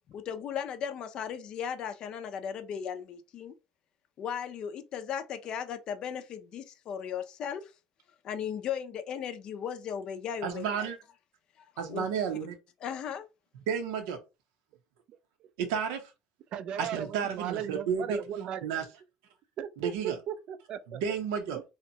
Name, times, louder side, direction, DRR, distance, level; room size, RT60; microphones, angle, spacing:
voice 1, 0.1-3.5 4.2-7.7 8.2-10.9 11.9-12.1 12.8-13.3, left 8 dB, 45° left, 0.4 m, -36 dB
voice 2, 10.4-11.0 11.8-12.6 13.7-14.2 15.6-16.1 16.8-18.2 18.6-18.8 19.8-20.2 20.9-21.6, right 7 dB, 90° right, 0.7 m, -31 dB
voice 3, 16.5-18.7 19.6-21.0 21.5-21.6, right 10 dB, 50° right, 0.3 m, -36 dB
2.8 x 2.1 x 2.7 m
cardioid pair, 130°, 2 cm